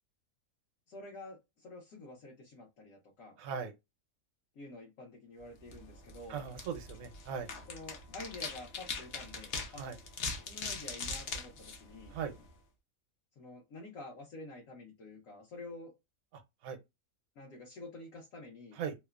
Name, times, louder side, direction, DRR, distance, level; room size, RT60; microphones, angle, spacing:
voice 1, 0.9-3.4 4.5-6.5 7.7-9.9 10.5-12.2 13.4-15.9 17.4-18.8, left 2 dB, 70° left, 1.2 m, -49 dB
voice 2, 3.4-3.7 6.3-7.5 9.8-10.0 12.1-12.3 16.6-16.8 18.8-18.9, right 7 dB, 75° right, 1.0 m, -38 dB
sound 1, 5.6-12.5, left 4 dB, 55° left, 0.7 m, -42 dB
3.0 x 2.0 x 2.3 m
omnidirectional pair, 1.5 m